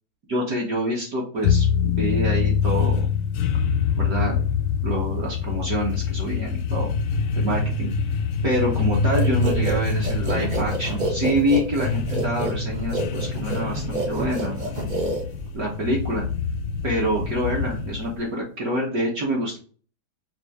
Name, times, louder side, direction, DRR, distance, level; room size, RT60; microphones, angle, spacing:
voice 1, 0.3-3.1 4.0-4.4 4.8-6.9 7.4-7.9 8.4-14.7 15.5-16.3 16.8-19.6, right 1 dB, 55° right, -3 dB, 1.3 m, -26 dB
sound 1, 1.4-18.2, left 5 dB, 75° left, 1.3 m, -25 dB
sound 2, 9.1-15.6, right 1 dB, 75° right, 0.4 m, -28 dB
5.2 x 2.5 x 3.5 m, 0.40 s
omnidirectional pair, 2.2 m